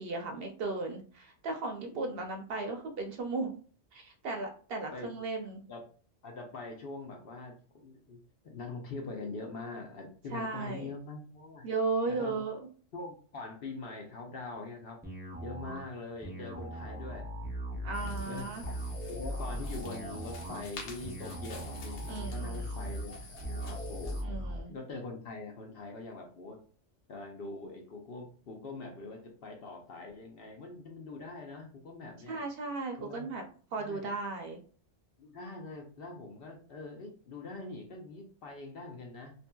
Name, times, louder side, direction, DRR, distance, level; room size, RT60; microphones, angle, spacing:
voice 1, 0.0-3.5 3.9-5.6 10.3-10.9 11.6-12.6 17.8-18.6 22.1-22.7 24.2-24.7 32.3-33.4 33.7-34.6, right 3 dB, 65° right, 4 dB, 0.7 m, -36 dB
voice 2, 1.9-2.3 4.9-5.8 6.2-8.2 8.4-11.7 12.1-12.4 12.9-15.0 15.4-17.3 17.7-17.8 18.2-18.6 19.1-24.2 24.7-26.6 27.1-32.4 33.0-33.3 33.8-34.1 35.2-39.3, left 3 dB, 60° left, 1 dB, 0.8 m, -43 dB
sound 1, 15.0-24.6, right 1 dB, 15° right, 0.4 m, -39 dB
sound 2, 17.9-24.2, left 1 dB, 80° left, 1.0 m, -46 dB
2.8 x 2.5 x 2.2 m, 0.41 s
omnidirectional pair, 1.2 m